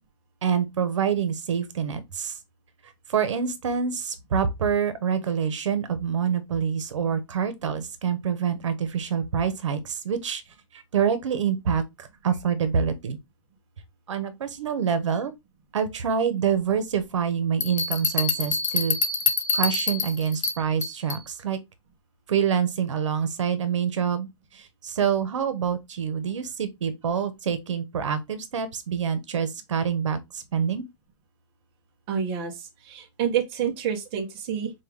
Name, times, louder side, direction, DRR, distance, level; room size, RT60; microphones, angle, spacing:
voice 1, 0.4-2.3 3.1-10.4 10.7-13.2 14.1-15.3 15.7-19.0 19.5-21.6 22.3-24.3 24.5-30.8, right 7 dB, 75° right, 1.0 m, -26 dB
sound 1, 17.6-21.3, left 4 dB, 85° left, 1.8 m, -26 dB
voice 2, 32.1-34.7, right 8 dB, 20° right, 0.7 m, -28 dB
5.4 x 2.4 x 3.3 m
hypercardioid pair, 175°, 16 cm